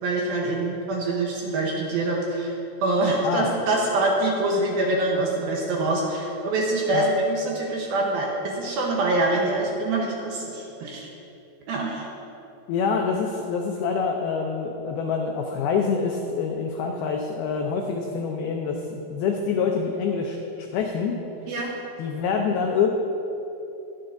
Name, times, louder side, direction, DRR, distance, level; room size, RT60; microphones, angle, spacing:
voice 1, 0.0-11.1 11.7-12.1 21.5-21.7, right 2 dB, 70° right, -2 dB, 2.4 m, -25 dB
voice 2, 12.7-21.2 22.0-22.9, left 5 dB, 90° left, 2 dB, 2.1 m, -26 dB
21.5 x 7.6 x 2.6 m, 3.0 s
omnidirectional pair, 5.1 m